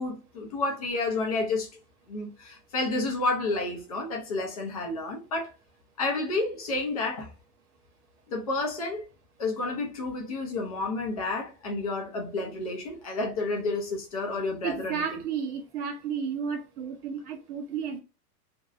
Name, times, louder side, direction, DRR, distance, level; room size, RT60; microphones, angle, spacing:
voice 1, 0.0-1.7 2.1-5.5 6.0-7.3 8.3-9.1 9.4-15.2, left 2 dB, 25° left, 0.4 m, -30 dB
voice 2, 14.6-18.0, right 7 dB, 70° right, 0.7 m, -32 dB
3.0 x 2.6 x 2.4 m
supercardioid pair, 160°, 48 cm